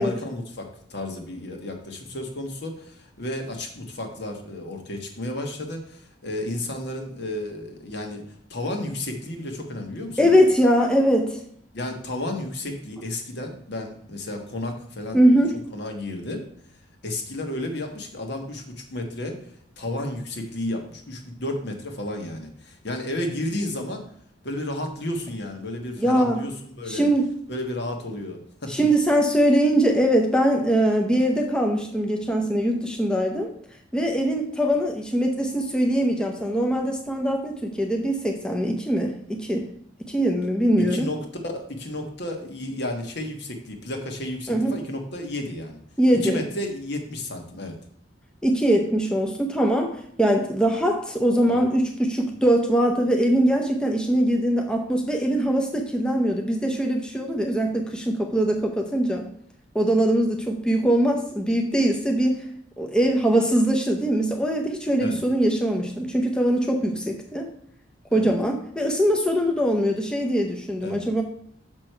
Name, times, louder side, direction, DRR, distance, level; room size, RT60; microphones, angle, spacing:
voice 1, 0.0-8.2 8.5-10.4 11.7-15.2 15.7-16.4 17.0-19.4 19.8-24.0 24.4-27.1 27.5-28.7 40.9-45.8 46.2-47.7 51.5-51.6 65.0-65.2 68.1-68.3 70.8-71.0, left 1 dB, 60° left, 3 dB, 1.4 m, -32 dB
voice 2, 10.2-11.4 15.1-15.6 26.0-26.4 26.9-27.3 28.7-33.5 33.9-39.7 40.0-41.1 44.5-44.8 46.0-46.4 48.4-59.3 59.7-62.4 62.8-67.5 68.1-71.2, right 1 dB, 5° left, 2 dB, 0.7 m, -22 dB
6.4 x 6.1 x 4.5 m, 0.65 s
head